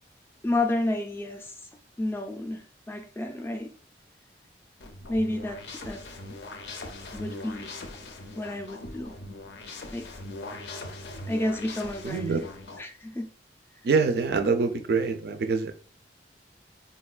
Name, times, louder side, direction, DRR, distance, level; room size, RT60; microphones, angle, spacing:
voice 1, 0.4-1.6 2.0-3.7 5.1-6.0 7.1-7.7 8.4-9.2 9.9-10.1 11.3-12.5 12.8-13.3, left 1 dB, 15° left, 0.3 m, -31 dB
sound 1, 4.8-12.8, left 2 dB, 75° left, 0.5 m, -41 dB
voice 2, 12.0-12.4 13.8-15.7, right 4 dB, 60° right, 0.3 m, -25 dB
3.7 x 2.2 x 2.4 m
head